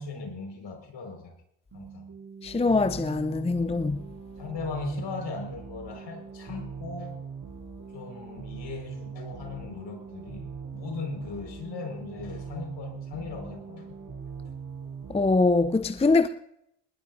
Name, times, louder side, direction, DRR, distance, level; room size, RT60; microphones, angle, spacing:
voice 1, 0.0-1.3 1.7-2.1 4.4-7.2 7.9-14.0, left 4 dB, 60° left, 5.2 m, -38 dB
sound 1, 1.7-15.3, right 6 dB, 45° right, 6.0 m, -41 dB
voice 2, 2.4-4.0 15.1-16.3, left 3 dB, 15° left, 0.6 m, -23 dB
20.0 x 19.5 x 2.7 m
hypercardioid pair, 60°, 49 cm